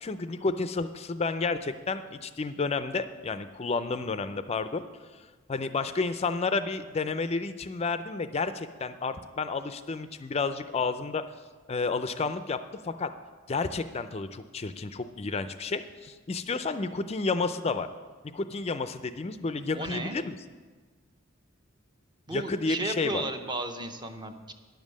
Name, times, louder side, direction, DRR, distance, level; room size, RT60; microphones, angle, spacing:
voice 1, 0.0-4.8 5.5-11.2 11.7-12.6 12.8-13.1 13.5-17.9 18.3-20.3 22.3-23.2, left 4 dB, 30° left, 11 dB, 0.4 m, -31 dB
voice 2, 19.7-20.2 22.3-24.5, right 2 dB, 20° right, 7 dB, 0.6 m, -34 dB
10.5 x 7.3 x 6.4 m, 1.4 s
head